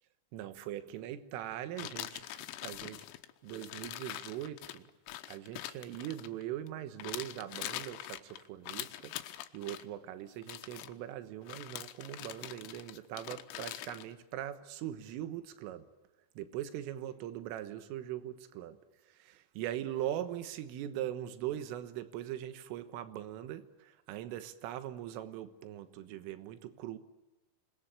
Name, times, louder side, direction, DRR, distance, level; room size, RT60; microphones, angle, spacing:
voice 1, 0.3-3.1 3.4-4.9 5.3-9.2 9.5-15.9 16.4-18.8 19.1-27.0, right 12 dB, 85° right, 3.8 m, -41 dB
sound 1, 1.8-6.7 7.0-9.8 10.4-10.9 11.5-14.1, left 14 dB, 90° left, 3.7 m, -43 dB
27.5 x 21.5 x 8.9 m
omnidirectional pair, 5.8 m